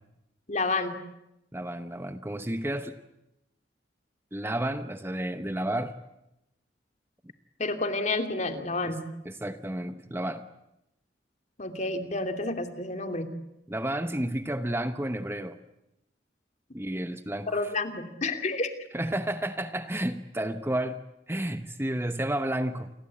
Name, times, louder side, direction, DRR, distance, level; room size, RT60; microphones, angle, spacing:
voice 1, 0.5-1.0 7.6-9.0 11.6-13.3 17.5-18.7, left 3 dB, 40° left, 7 dB, 2.7 m, -30 dB
voice 2, 1.5-3.0 4.3-6.0 8.8-8.9 9.2-10.4 13.7-15.6 16.7-17.6 18.9-22.9, right 1 dB, 15° right, 10 dB, 0.9 m, -31 dB
29.0 x 22.5 x 8.7 m, 0.88 s
head